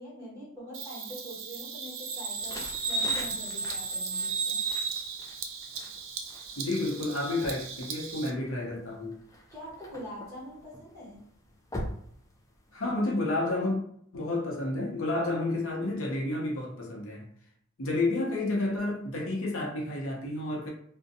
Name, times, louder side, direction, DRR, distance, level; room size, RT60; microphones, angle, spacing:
voice 1, 0.0-4.7 9.5-11.3, equal, 15° right, 1.2 m, -44 dB
Bird vocalization bird call bird song, 0.7-8.3, right 4 dB, 70° right, 0.4 m, -34 dB
sound 1, 2.2-13.0, left 1 dB, 15° left, 0.3 m, -45 dB
voice 2, 6.6-9.2 12.7-13.8 14.1-17.3 17.8-20.7, left 2 dB, 80° left, 0.7 m, -30 dB
2.5 x 2.1 x 2.6 m
head